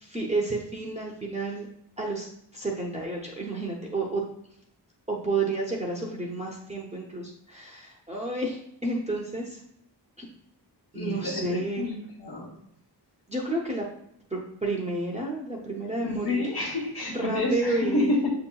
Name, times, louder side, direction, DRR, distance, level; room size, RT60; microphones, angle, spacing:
voice 1, 0.0-1.7 2.0-2.3 2.5-4.2 5.1-9.6 10.2-10.3 10.9-11.9 13.3-13.9 14.3-16.4 17.1-18.1, right 2 dB, 15° right, -4 dB, 0.6 m, -30 dB
voice 2, 10.9-11.9 12.2-12.5 16.0-18.3, left 2 dB, 60° left, -5 dB, 1.1 m, -28 dB
6.9 x 2.9 x 2.2 m, 0.72 s
wide cardioid pair, 110°, 42 cm